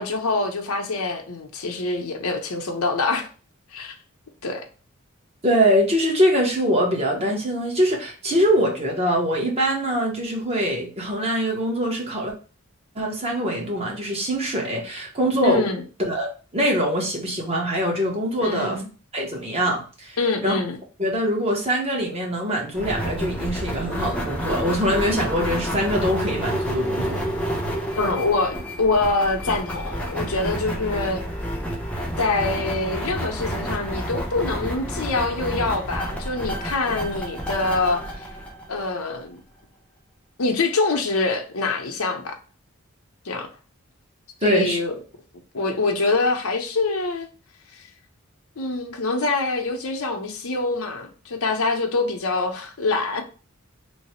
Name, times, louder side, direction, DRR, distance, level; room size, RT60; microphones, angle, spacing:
voice 1, 0.0-3.3 3.7-4.0 4.4-4.6 15.4-15.8 18.4-18.9 20.2-20.8 28.0-31.2 32.2-38.3 38.7-39.4 40.4-42.4 43.2-43.5 44.4-44.9 45.5-47.3 48.6-53.2, left 3 dB, 85° left, 0.7 m, -25 dB
voice 2, 5.4-12.3 13.0-15.7 16.0-18.8 19.1-20.6 21.0-27.3 44.4-44.8, equal, 30° right, 0.8 m, -23 dB
sound 1, 22.7-39.2, equal, 5° left, 0.5 m, -29 dB
3.1 x 2.0 x 4.2 m
head